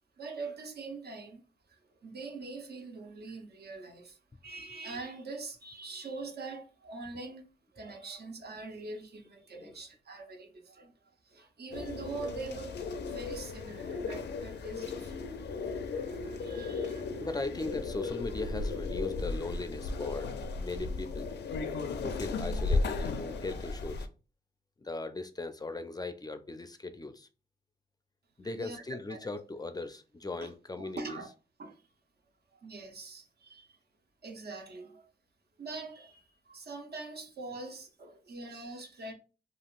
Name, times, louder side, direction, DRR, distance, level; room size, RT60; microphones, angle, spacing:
voice 1, 0.2-1.4 1.7-7.4 7.7-10.9 11.2-15.2 15.6-17.3 28.4-28.8 29.1-29.2 30.4-30.5 30.8-31.3 31.6-31.9 32.6-33.8 34.2-35.1 35.6-39.1, right 3 dB, 65° right, 0.7 m, -43 dB
sound 1, 11.7-24.1, left 3 dB, 80° left, 0.4 m, -35 dB
voice 2, 17.2-21.3 22.0-24.1 24.8-27.3 28.4-31.2, left 2 dB, 20° left, 0.4 m, -38 dB
3.5 x 2.3 x 2.4 m
cardioid pair, 50°, 18 cm